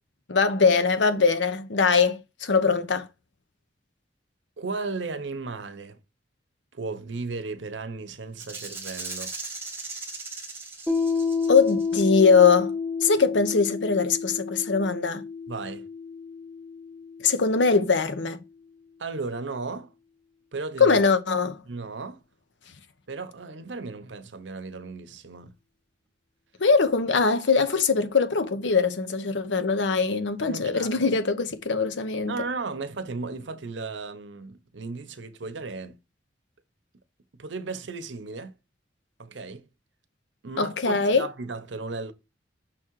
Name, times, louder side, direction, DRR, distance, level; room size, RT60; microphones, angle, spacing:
voice 1, 0.3-3.1 11.5-12.7 13.0-15.2 17.2-18.4 20.8-21.6 26.6-32.3 40.6-41.3, left 5 dB, 80° left, 0.8 m, -22 dB
voice 2, 4.6-6.0 6.7-9.3 15.5-15.9 19.0-19.9 20.5-21.0 21.7-22.2 23.1-25.5 30.4-31.1 32.3-36.0 37.4-38.5 39.2-39.7 40.4-42.1, right 3 dB, 80° right, 0.8 m, -35 dB
Rattle (instrument), 8.4-12.2, right 3 dB, 15° right, 1.4 m, -38 dB
Piano, 10.9-18.1, left 5 dB, 5° left, 1.8 m, -30 dB
6.1 x 3.7 x 4.5 m
head